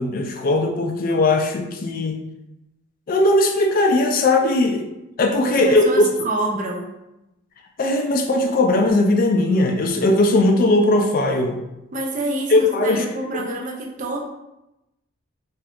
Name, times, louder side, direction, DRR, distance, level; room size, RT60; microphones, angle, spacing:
voice 1, 0.0-2.2 3.1-4.9 5.2-6.1 7.8-11.6 12.5-13.1 13.3-13.4, left 2 dB, 40° left, 3 dB, 0.3 m, -18 dB
voice 2, 5.3-7.0 11.9-14.2, right 2 dB, 35° right, 0 dB, 0.4 m, -27 dB
2.5 x 2.3 x 3.4 m, 0.92 s
head